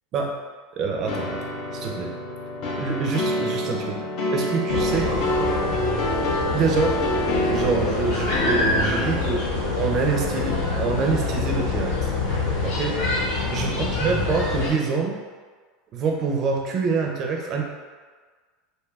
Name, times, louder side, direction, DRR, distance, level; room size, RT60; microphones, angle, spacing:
voice 1, 0.7-1.4 1.7-2.1 2.8-4.1 4.3-5.1 6.1-7.0 7.5-9.5 9.8-12.1 12.6-13.0 13.5-15.2 15.9-17.6, right 4 dB, 35° right, 1 dB, 0.4 m, -26 dB
sound 1, 1.1-9.3, left 1 dB, 50° left, 0.4 m, -27 dB
sound 2, 4.7-14.7, left 3 dB, 75° left, 0.9 m, -26 dB
2.6 x 2.3 x 3.3 m, 1.5 s
supercardioid pair, 150°, 0 cm